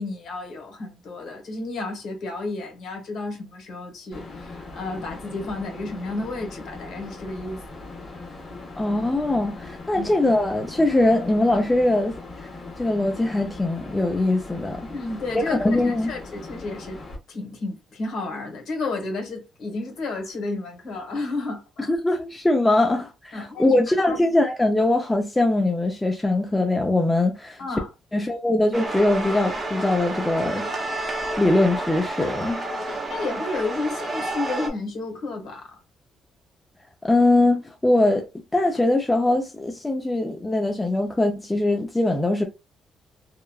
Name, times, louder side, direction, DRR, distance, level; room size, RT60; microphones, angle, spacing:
voice 1, 0.0-7.6 9.9-10.1 14.9-17.0 17.3-21.9 23.3-23.8 24.1-24.2 27.6-27.9 32.8-35.7, left 3 dB, 70° left, 1.2 m, -32 dB
sound 1, 4.1-17.2, left 3 dB, 40° left, 1.5 m, -40 dB
voice 2, 8.8-12.1 12.8-14.8 15.5-16.1 21.9-27.6 28.1-30.9 31.4-32.6 37.0-38.2 38.5-42.5, left 2 dB, 15° left, 0.5 m, -22 dB
sound 2, 28.7-34.7, right 2 dB, 30° right, 0.8 m, -30 dB
2.9 x 2.3 x 2.3 m
cardioid pair, 90°, 0 cm